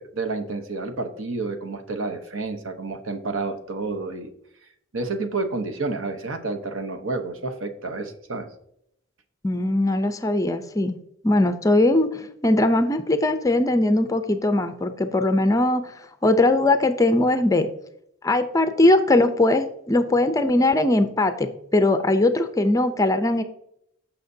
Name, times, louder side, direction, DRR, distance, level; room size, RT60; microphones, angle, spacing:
voice 1, 0.0-4.3 4.9-8.5, right 3 dB, 65° right, 7 dB, 1.0 m, -30 dB
voice 2, 9.4-11.0 11.2-15.8 16.2-17.7 18.2-23.4, left 2 dB, 15° left, 9 dB, 0.5 m, -20 dB
14.5 x 5.8 x 2.7 m, 0.74 s
head